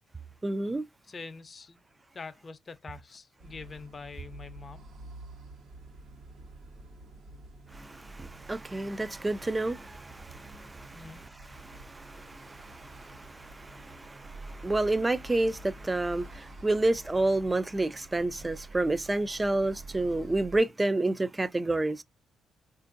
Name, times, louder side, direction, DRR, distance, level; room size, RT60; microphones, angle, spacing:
voice 1, 0.4-0.8 7.7-22.0, right 2 dB, 20° right, 0.3 m, -30 dB
voice 2, 1.0-1.8 2.1-4.9 10.9-11.3, left 4 dB, 35° left, 0.5 m, -44 dB
sound 1, 3.4-20.6, right 2 dB, 80° right, 1.0 m, -48 dB
3.5 x 2.5 x 2.5 m
cardioid pair, 90°, 0 cm